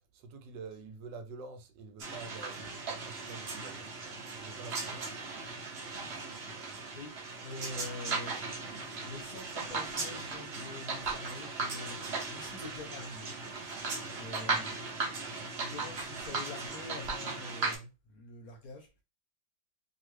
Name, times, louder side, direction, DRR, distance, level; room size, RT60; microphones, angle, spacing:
voice 1, 0.1-3.9 4.3-5.1, right 4 dB, 80° right, 1.2 m, -47 dB
sound 1, 2.0-17.8, right 3 dB, 55° right, 0.7 m, -37 dB
voice 2, 7.4-8.7 9.0-14.8 15.6-18.9, left 3 dB, 65° left, 0.9 m, -46 dB
2.9 x 2.4 x 3.1 m
omnidirectional pair, 2.0 m